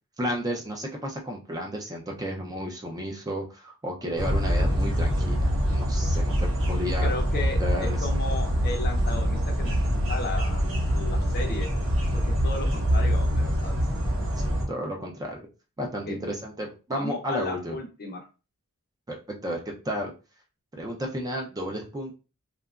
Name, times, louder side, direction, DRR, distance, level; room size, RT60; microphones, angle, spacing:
voice 1, 0.2-7.1 7.6-8.1 14.4-15.5 15.8-17.8 19.1-20.1 20.7-22.2, equal, 15° right, 0 dB, 0.4 m, -33 dB
sound 1, 4.2-14.6, equal, 65° right, 0.9 m, -25 dB
voice 2, 7.0-10.6 10.9-11.7 12.1-13.8 16.1-16.2 16.9-18.2, left 3 dB, 45° left, 3 dB, 0.6 m, -35 dB
2.8 x 2.3 x 2.3 m, 0.32 s
head